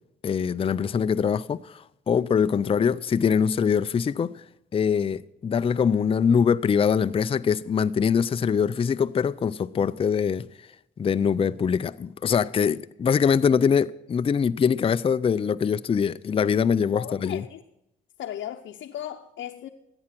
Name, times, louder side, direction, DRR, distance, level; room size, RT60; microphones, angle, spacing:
voice 1, 0.2-4.3 4.7-10.5 11.0-17.4, left 7 dB, 30° left, 0.4 m, -23 dB
voice 2, 16.9-17.6 18.2-19.7, left 11 dB, 70° left, 0.8 m, -36 dB
14.5 x 8.7 x 6.0 m
supercardioid pair, 70°, 20 cm